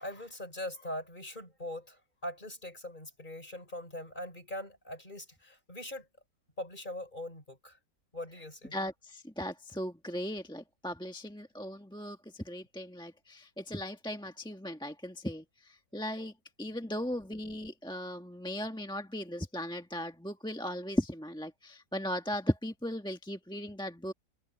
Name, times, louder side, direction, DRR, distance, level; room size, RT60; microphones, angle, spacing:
voice 1, 0.0-6.1 6.6-7.8 8.1-8.8 16.8-16.9, left 1 dB, 25° left, 6.0 m, -42 dB
voice 2, 8.7-16.3 16.6-24.1, equal, 5° left, 1.3 m, -37 dB
omnidirectional pair, 1.8 m